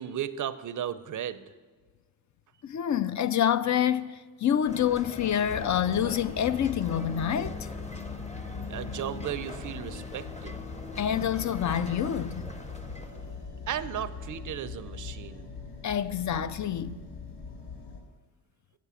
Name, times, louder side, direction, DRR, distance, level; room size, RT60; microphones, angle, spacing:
voice 1, 0.0-1.5 8.7-10.6 13.7-15.5, right 10 dB, 40° right, 0.6 m, -35 dB
voice 2, 2.6-7.7 11.0-12.5 15.8-17.0, left 9 dB, 40° left, 0.4 m, -27 dB
sound 1, 4.7-13.5, left 2 dB, 15° left, 0.8 m, -41 dB
sound 2, 5.4-18.0, left 5 dB, 55° left, 2.3 m, -42 dB
8.1 x 6.0 x 7.0 m
supercardioid pair, 55°, 48 cm